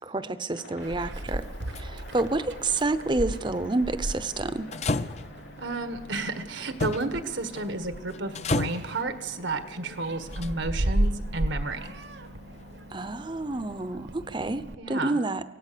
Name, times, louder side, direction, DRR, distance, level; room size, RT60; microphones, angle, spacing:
voice 1, 0.1-1.4 1.8-4.8 12.9-14.6 14.9-15.4, right 2 dB, 25° right, 13 dB, 0.7 m, -29 dB
Aircraft, 0.5-14.0, left 1 dB, 65° left, 3.5 m, -49 dB
Meow, 0.8-14.7, right 1 dB, 65° right, 1.1 m, -35 dB
sound 1, 1.4-1.8 4.7-5.5 6.8-7.1 7.5-7.8 8.1-8.9 10.3-10.8 11.8-11.9, left 2 dB, 35° left, 0.6 m, -30 dB
voice 2, 5.6-12.0 14.8-15.2, right 2 dB, 80° right, 9 dB, 1.5 m, -32 dB
24.5 x 17.0 x 6.8 m, 1.0 s
head